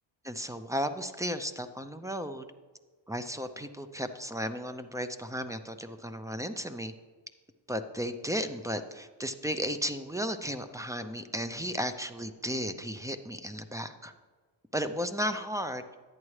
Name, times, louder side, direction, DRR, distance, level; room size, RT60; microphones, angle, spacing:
voice 1, 0.2-2.5 3.1-6.9 7.7-14.1 14.7-15.8, equal, 10° right, 10 dB, 0.4 m, -34 dB
10.5 x 8.7 x 3.2 m, 1.4 s
cardioid pair, 90°, 46 cm